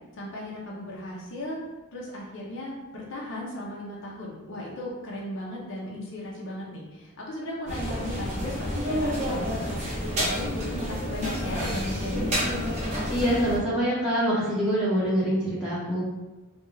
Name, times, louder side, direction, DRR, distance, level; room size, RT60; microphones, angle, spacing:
voice 1, 0.1-12.7, left 1 dB, 55° left, -4 dB, 0.6 m, -36 dB
sound 1, 7.7-13.6, equal, 30° right, 0.7 m, -29 dB
voice 2, 13.1-16.0, equal, 5° right, -10 dB, 0.8 m, -25 dB
2.4 x 2.3 x 3.1 m, 1.1 s
head